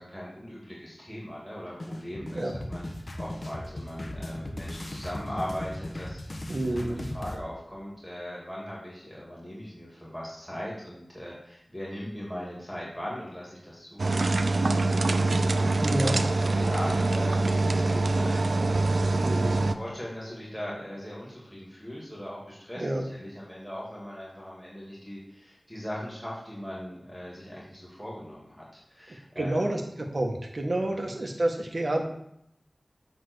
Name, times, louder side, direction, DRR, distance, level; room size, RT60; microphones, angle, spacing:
voice 1, 0.0-29.7 30.8-31.1, equal, ahead, -6 dB, 2.7 m, -40 dB
sound 1, 1.8-7.4, left 1 dB, 55° left, 1.1 m, -37 dB
voice 2, 6.5-7.1 15.8-16.2 19.2-19.6 22.7-23.0 29.3-32.0, right 1 dB, 55° right, 2 dB, 1.4 m, -29 dB
sound 2, 14.0-19.7, right 2 dB, 85° right, 0.5 m, -24 dB
8.6 x 3.8 x 6.4 m, 0.76 s
wide cardioid pair, 65°, 0 cm